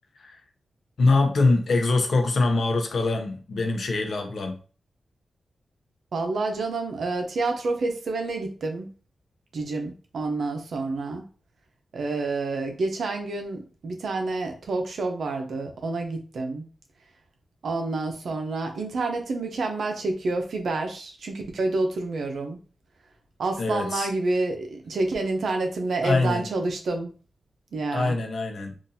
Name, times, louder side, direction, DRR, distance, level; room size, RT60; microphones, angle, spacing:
voice 1, 1.0-4.6 23.6-24.1 26.0-26.5 27.9-28.7, left 3 dB, 65° left, 4 dB, 0.7 m, -23 dB
voice 2, 6.1-8.9 9.5-11.2 11.9-16.6 17.6-22.6 23.4-27.1 27.7-28.1, right 3 dB, 75° right, 3 dB, 0.7 m, -28 dB
3.8 x 2.6 x 2.7 m, 0.37 s
wide cardioid pair, 130°, 0 cm